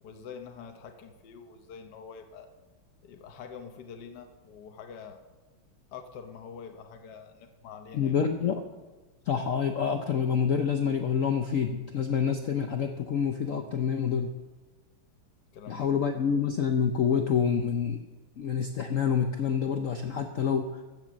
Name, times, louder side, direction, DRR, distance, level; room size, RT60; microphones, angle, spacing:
voice 1, 0.0-2.5 3.0-5.2 5.9-8.2 15.5-16.2, left 6 dB, 60° left, 5 dB, 1.3 m, -45 dB
voice 2, 7.9-8.6 9.3-14.3 15.7-18.0 18.4-20.8, left 7 dB, 80° left, 5 dB, 0.7 m, -27 dB
13.5 x 6.8 x 7.4 m, 1.2 s
omnidirectional pair, 2.3 m